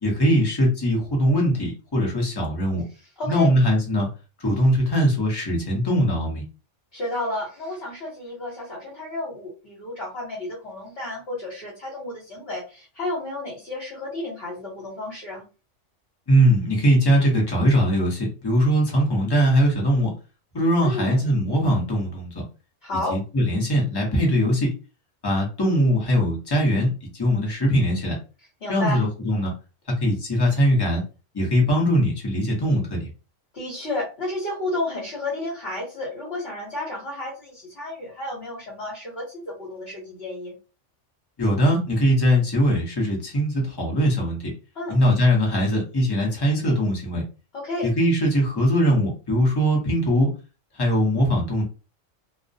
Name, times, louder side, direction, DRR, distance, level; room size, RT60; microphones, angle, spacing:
voice 1, 0.0-2.8 3.3-4.1 4.4-6.4 16.3-20.1 20.5-22.3 23.1-24.7 25.2-28.2 28.7-29.5 30.0-31.0 31.3-33.1 41.4-44.5 44.9-47.2 47.8-50.3 50.7-51.6, equal, 25° left, -2 dB, 0.7 m, -21 dB
voice 2, 6.9-15.4 20.8-21.2 22.8-23.2 28.6-29.0 33.5-40.6 44.7-45.0 47.5-47.9, left 2 dB, 60° left, -5 dB, 1.1 m, -31 dB
2.4 x 2.1 x 2.6 m, 0.33 s
omnidirectional pair, 1.2 m